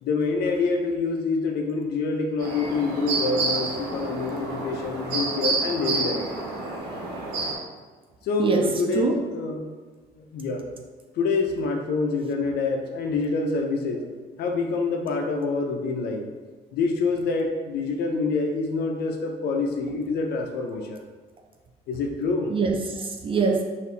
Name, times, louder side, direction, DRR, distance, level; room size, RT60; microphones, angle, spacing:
voice 1, 0.0-6.2 8.2-9.6 10.2-10.6 11.2-14.0 14.4-16.2 16.7-21.0 21.9-22.5, left 3 dB, 70° left, 2 dB, 0.7 m, -26 dB
sound 1, 2.4-7.5, right 3 dB, 90° right, 0.9 m, -29 dB
voice 2, 8.4-9.2 22.5-23.6, right 4 dB, 30° right, 2 dB, 0.4 m, -24 dB
4.2 x 2.7 x 3.3 m, 1.4 s
cardioid pair, 110°, 17 cm